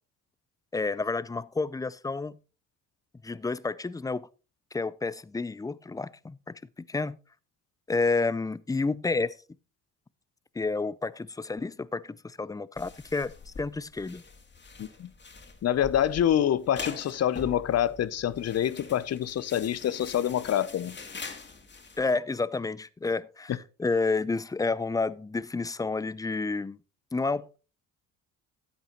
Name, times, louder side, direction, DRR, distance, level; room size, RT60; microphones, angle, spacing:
voice 1, 0.7-2.4 3.2-4.3 4.7-7.2 7.9-9.3 10.6-14.2 22.0-23.5 23.8-26.8 27.1-27.6, left 3 dB, 10° left, 0.4 m, -30 dB
sound 1, 12.8-22.0, left 3 dB, 30° left, 2.2 m, -44 dB
voice 2, 14.8-15.1 15.6-20.9 23.5-23.6, left 10 dB, 45° left, 0.7 m, -26 dB
12.5 x 8.8 x 3.0 m
supercardioid pair, 65°, 35 cm